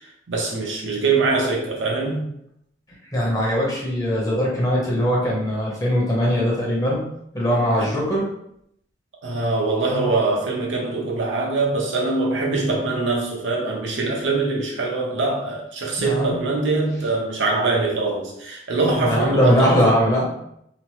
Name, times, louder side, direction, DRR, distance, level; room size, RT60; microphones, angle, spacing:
voice 1, 0.3-2.3 7.8-7.9 9.2-19.9, right 3 dB, 90° right, 0.7 m, -23 dB
voice 2, 3.1-7.0 7.3-8.3 16.0-16.4 19.0-20.3, equal, 20° left, 0.8 m, -20 dB
2.9 x 2.0 x 3.0 m
head